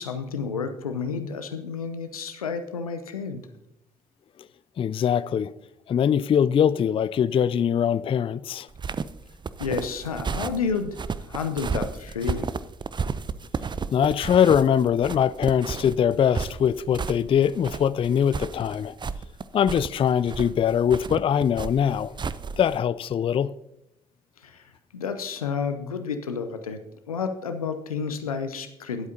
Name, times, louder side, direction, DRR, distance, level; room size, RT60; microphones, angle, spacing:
voice 1, 0.0-3.5 9.6-11.0 11.3-12.5 24.4-26.8 27.1-29.1, left 5 dB, 85° left, 0.6 m, -30 dB
voice 2, 4.8-5.5 5.9-8.7 13.9-19.0 19.5-22.1 22.6-23.5, left 8 dB, 30° left, 0.3 m, -22 dB
sound 1, 8.7-22.8, right 5 dB, 25° right, 0.5 m, -33 dB
18.5 x 8.2 x 2.7 m
figure-of-eight pair, 45°, 18 cm